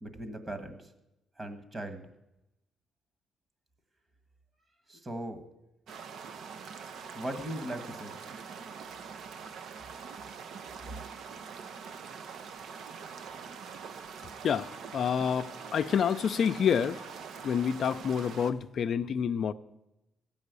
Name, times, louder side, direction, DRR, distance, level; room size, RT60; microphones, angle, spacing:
voice 1, 0.0-0.9 1.4-2.0 4.9-5.4 7.1-8.2, right 1 dB, 25° right, 8 dB, 1.7 m, -38 dB
sound 1, 5.9-18.5, right 6 dB, 70° right, 0.8 m, -44 dB
voice 2, 14.4-17.1 17.4-19.5, left 7 dB, 60° left, 10 dB, 0.4 m, -28 dB
15.0 x 5.5 x 8.3 m, 0.94 s
cardioid pair, 90°, 0 cm